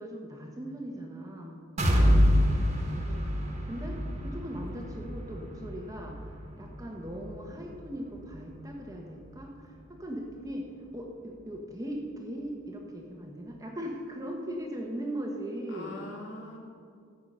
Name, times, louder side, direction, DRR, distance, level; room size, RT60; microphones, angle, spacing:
voice 1, 0.0-1.6 3.6-4.0 4.2-10.7 10.9-15.9, equal, 15° right, 0 dB, 1.2 m, -39 dB
sound 1, 1.8-9.6 10.0-10.1 10.5-10.6, equal, 30° right, 1.7 m, -28 dB
voice 2, 2.9-3.2 15.7-16.6, left 1 dB, 55° left, -1 dB, 2.2 m, -43 dB
14.0 x 8.3 x 5.5 m, 2.2 s
head